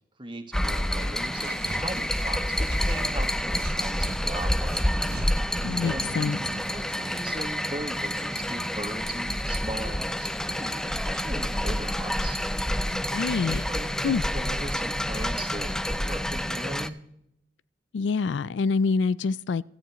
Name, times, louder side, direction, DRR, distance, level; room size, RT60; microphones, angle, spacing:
voice 1, 0.2-4.8 5.8-6.1 6.7-12.4 13.7-16.9, right 2 dB, 25° right, 1.6 m, -38 dB
sound 1, 0.5-16.9, equal, 5° left, 0.4 m, -28 dB
sound 2, 1.3-4.2 4.7-6.7, right 2 dB, 60° right, 0.8 m, -40 dB
voice 2, 5.6-6.4 12.9-13.6 14.0-14.2 17.9-19.6, left 5 dB, 75° left, 0.4 m, -26 dB
16.5 x 14.0 x 3.0 m
head